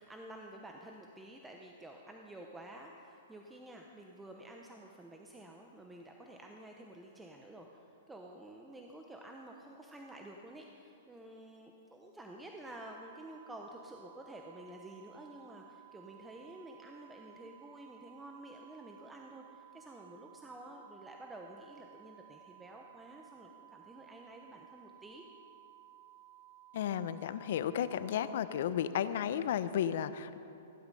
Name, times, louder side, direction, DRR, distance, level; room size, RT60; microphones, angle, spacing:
voice 1, 0.0-25.2, right 1 dB, 5° right, 1 dB, 0.8 m, -51 dB
sound 1, 12.6-28.6, right 13 dB, 30° right, 1.0 m, -58 dB
voice 2, 26.7-30.4, left 9 dB, 60° left, 13 dB, 0.7 m, -33 dB
15.5 x 11.5 x 5.4 m, 2.7 s
hypercardioid pair, 150°, 0 cm